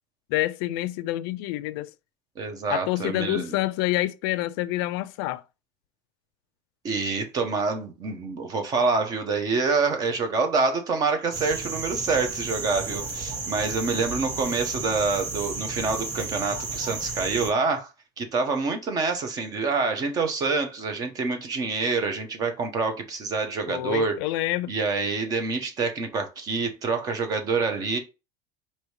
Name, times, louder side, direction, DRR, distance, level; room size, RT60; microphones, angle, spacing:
voice 1, 0.3-1.9 2.7-5.4 23.7-24.7, left 16 dB, 75° left, 0.4 m, -27 dB
voice 2, 2.4-3.6 6.8-17.9 18.2-24.2 24.7-28.0, right 4 dB, 30° right, 0.8 m, -26 dB
sound 1, 11.3-17.5, right 3 dB, 75° right, 1.5 m, -33 dB
4.8 x 2.8 x 3.2 m
cardioid pair, 160°, 12 cm